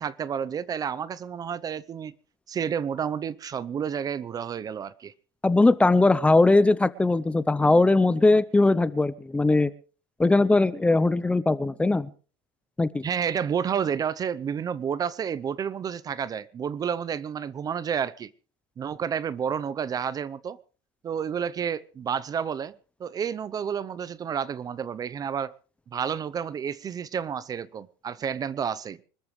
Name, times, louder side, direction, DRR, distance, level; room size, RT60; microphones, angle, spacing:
voice 1, 0.0-2.2 2.5-5.1 13.0-18.3 18.8-20.6 21.0-22.7 23.0-25.5 25.9-29.0, right 7 dB, 30° right, 0.7 m, -30 dB
voice 2, 5.4-9.7 10.2-12.1 12.8-13.1, left 2 dB, 10° left, 0.7 m, -20 dB
25.5 x 13.5 x 3.2 m
supercardioid pair, 125°, 13 cm